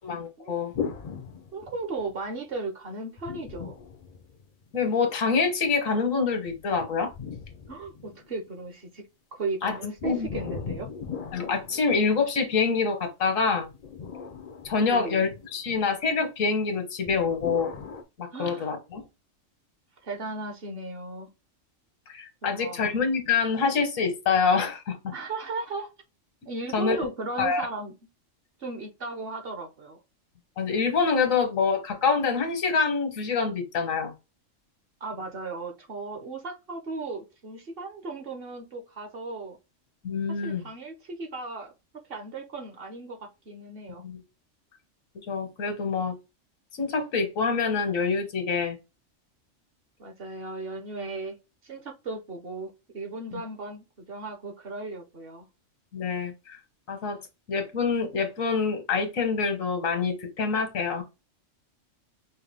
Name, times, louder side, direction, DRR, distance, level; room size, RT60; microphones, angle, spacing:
voice 1, 0.0-0.7 4.7-7.1 9.6-9.7 10.0-10.3 11.3-13.7 14.6-17.7 18.2-19.0 22.1-25.1 26.7-27.0 27.4-27.7 30.6-34.1 40.0-40.6 44.0-44.2 45.3-46.1 46.7-48.8 53.3-53.4 55.9-56.6 56.9-57.2 57.5-61.0, left 5 dB, 85° left, 1.5 m, -26 dB
sound 1, 0.7-2.2 3.2-4.8 6.5-8.5 10.0-12.5 13.6-15.5 17.0-18.0, left 6 dB, 55° left, 0.4 m, -38 dB
voice 2, 1.5-3.7 7.7-9.0 9.3-10.9 14.8-15.3 18.3-18.7 20.0-21.3 22.4-22.9 25.1-25.9 26.5-27.9 28.6-30.0 35.0-39.6 40.3-41.7 42.1-44.0 50.0-51.4 51.6-55.4, right 3 dB, 50° right, 1.1 m, -36 dB
5.5 x 2.2 x 3.4 m
omnidirectional pair, 1.3 m